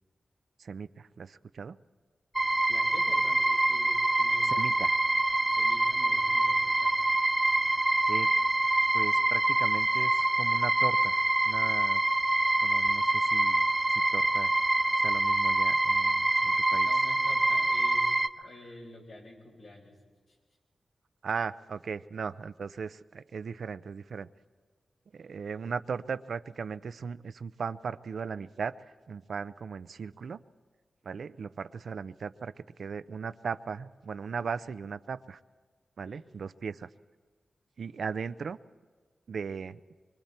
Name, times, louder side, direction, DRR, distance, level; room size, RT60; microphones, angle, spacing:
voice 1, 0.6-1.8 4.5-5.0 7.7-8.3 8.9-12.0 12.6-14.5 15.0-16.9 21.2-24.3 25.1-30.4 31.0-35.4 36.0-36.9 37.8-38.6 39.3-39.8, right 6 dB, 75° right, 13 dB, 0.5 m, -38 dB
sound 1, 2.3-18.3, right 2 dB, 25° right, 0.9 m, -25 dB
voice 2, 2.7-4.7 5.5-7.0 16.7-18.1 18.4-20.0 20.3-20.4 36.0-36.2, left 2 dB, 85° left, -5 dB, 7.5 m, -48 dB
24.5 x 24.0 x 4.4 m, 1.5 s
cardioid pair, 50°, 0 cm